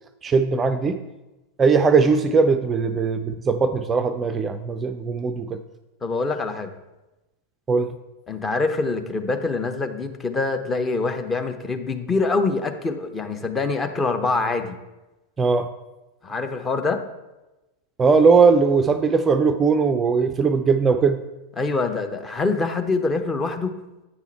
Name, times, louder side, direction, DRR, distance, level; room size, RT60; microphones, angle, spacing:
voice 1, 0.2-1.0 1.6-5.6 7.7-7.9 15.4-15.7 18.0-21.2, right 5 dB, 20° right, 8 dB, 0.4 m, -19 dB
voice 2, 6.0-6.7 8.3-14.8 16.2-17.0 21.6-23.7, left 3 dB, 20° left, 7 dB, 0.8 m, -25 dB
8.8 x 6.0 x 4.4 m, 1.0 s
figure-of-eight pair, 90°, 0 cm